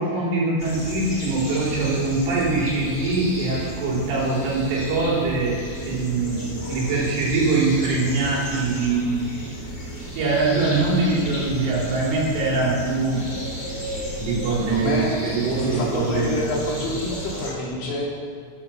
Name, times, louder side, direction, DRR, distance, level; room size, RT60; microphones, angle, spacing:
voice 1, 0.0-9.3 10.1-13.3 14.2-16.4, right 3 dB, 80° right, -5 dB, 6.6 m, -23 dB
sound 1, 0.6-17.5, equal, 25° left, 3.6 m, -33 dB
voice 2, 14.4-15.1 15.5-18.1, left 2 dB, 70° left, -3 dB, 5.0 m, -27 dB
15.0 x 12.5 x 5.9 m, 2.2 s
omnidirectional pair, 5.5 m